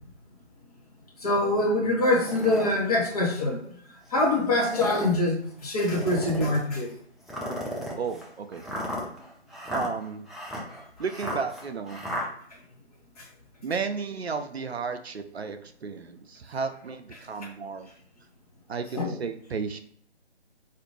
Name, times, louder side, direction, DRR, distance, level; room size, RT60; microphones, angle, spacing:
voice 1, 1.2-3.6 4.1-6.9 13.2-13.3 17.4-17.5 18.9-19.1, left 2 dB, 35° left, -1 dB, 1.1 m, -24 dB
sound 1, 2.0-2.7 3.4-3.5 4.5-5.2 5.9-6.6 7.3-12.3, equal, ahead, 0.3 m, -35 dB
voice 2, 8.0-8.6 9.7-10.2 11.0-12.0 13.6-17.9 18.7-19.8, right 5 dB, 70° right, 8 dB, 0.6 m, -33 dB
4.1 x 2.6 x 3.1 m, 0.62 s
figure-of-eight pair, 155°, 33 cm